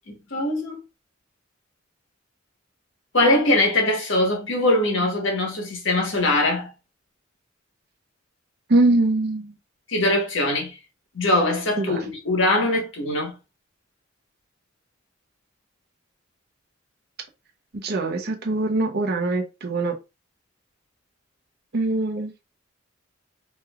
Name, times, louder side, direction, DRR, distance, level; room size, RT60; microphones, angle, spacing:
voice 1, 0.1-0.8 3.1-6.7 9.9-10.7 11.1-13.3, left 1 dB, 65° left, 1.4 m, -22 dB
voice 2, 8.7-9.6 11.8-12.0 17.7-20.0 21.7-22.3, right 2 dB, 55° right, 0.8 m, -22 dB
4.5 x 3.1 x 2.4 m
head